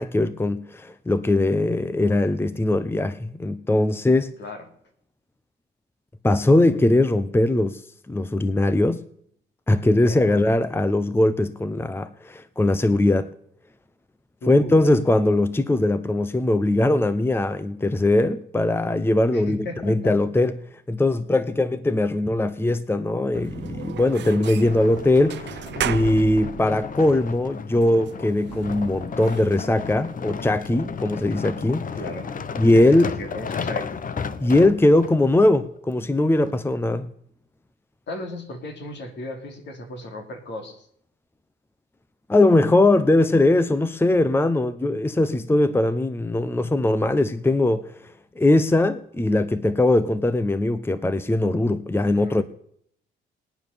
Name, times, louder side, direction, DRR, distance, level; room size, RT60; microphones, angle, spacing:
voice 1, 0.0-4.3 6.2-7.8 8.1-9.0 9.7-13.3 14.5-20.6 20.9-31.9 32.6-33.1 34.4-37.1 42.3-47.9 48.4-52.4, left 2 dB, 10° left, 0.8 m, -20 dB
voice 2, 10.0-10.5 14.4-14.8 19.3-19.9 32.0-32.3 32.7-32.8 33.2-34.0 38.1-40.9 52.1-52.4, left 2 dB, 60° left, 3.6 m, -35 dB
sound 1, 23.3-35.5, right 11 dB, 65° right, 0.7 m, -38 dB
sound 2, 24.1-35.1 35.8-35.9, left 6 dB, 45° left, 1.0 m, -34 dB
20.0 x 9.6 x 7.0 m
cardioid pair, 90°, 20 cm